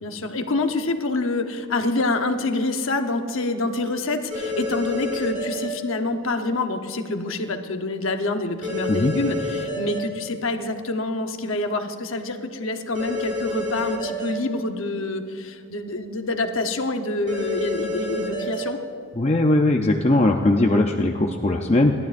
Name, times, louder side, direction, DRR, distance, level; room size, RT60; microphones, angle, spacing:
voice 1, 0.0-18.8, left 2 dB, 65° left, 6 dB, 1.0 m, -26 dB
sound 1, 4.3-5.7 8.6-10.0 12.9-14.3 17.3-18.6, left 2 dB, 40° right, 2.9 m, -28 dB
voice 2, 19.2-21.9, left 2 dB, 30° left, 3 dB, 0.6 m, -19 dB
28.5 x 12.0 x 2.6 m, 2.4 s
head